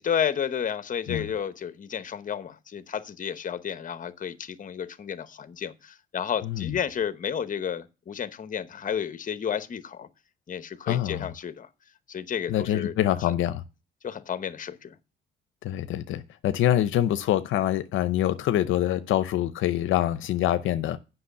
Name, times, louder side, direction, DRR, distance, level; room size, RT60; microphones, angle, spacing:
voice 1, 0.0-10.1 10.5-11.7 12.1-13.2 14.0-15.0, left 8 dB, 40° left, 0.9 m, -32 dB
voice 2, 6.4-6.7 10.9-11.3 12.5-13.6 15.6-21.0, left 12 dB, 80° left, 0.6 m, -25 dB
7.8 x 6.0 x 6.6 m
cardioid pair, 90°, 20 cm